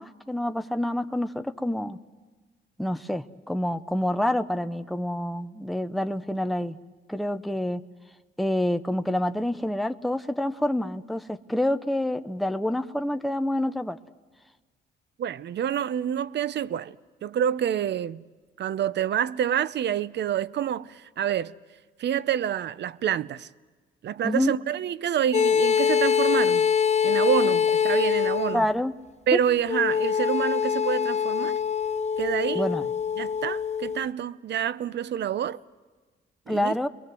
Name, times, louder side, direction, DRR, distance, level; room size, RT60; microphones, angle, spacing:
voice 1, 0.0-2.0 2.8-6.8 7.1-7.8 8.4-14.0 24.2-24.5 28.5-28.9 29.3-29.4 32.5-32.8 36.5-36.9, left 1 dB, ahead, 0.8 m, -27 dB
voice 2, 15.2-17.0 17.2-18.2 18.6-21.5 22.0-23.5 24.0-26.7 27.0-28.7 29.3-31.6 32.2-32.7 33.2-35.6 36.5-36.7, right 9 dB, 60° right, 0.8 m, -27 dB
sound 1, 25.3-28.6 29.7-34.1, left 7 dB, 35° left, 0.8 m, -24 dB
29.5 x 22.0 x 7.7 m
cardioid pair, 90°, 20 cm